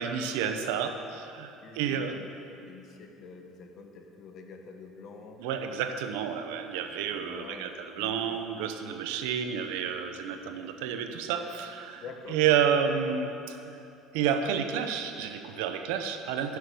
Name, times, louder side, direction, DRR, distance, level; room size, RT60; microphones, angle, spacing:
voice 1, 0.0-2.2 5.4-12.0 12.3-13.9 14.1-16.6, right 7 dB, 90° right, 7 dB, 0.9 m, -30 dB
voice 2, 1.6-2.3 2.7-5.4 6.9-7.7 7.9-8.2 12.0-12.4, left 5 dB, 50° left, 4 dB, 1.5 m, -47 dB
12.0 x 8.0 x 6.9 m, 2.8 s
cardioid pair, 120°, 0 cm